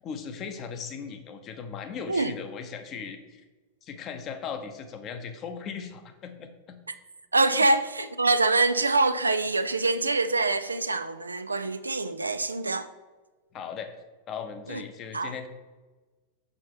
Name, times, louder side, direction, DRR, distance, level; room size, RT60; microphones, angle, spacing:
voice 1, 0.0-3.4 3.8-6.8 7.6-7.7 13.5-13.9 14.3-15.5, left 6 dB, 30° left, 0.7 m, -38 dB
voice 2, 7.3-12.9 14.7-14.8 15.1-15.3, right 3 dB, 80° right, 0.3 m, -25 dB
6.3 x 6.2 x 3.0 m
figure-of-eight pair, 90°, 0 cm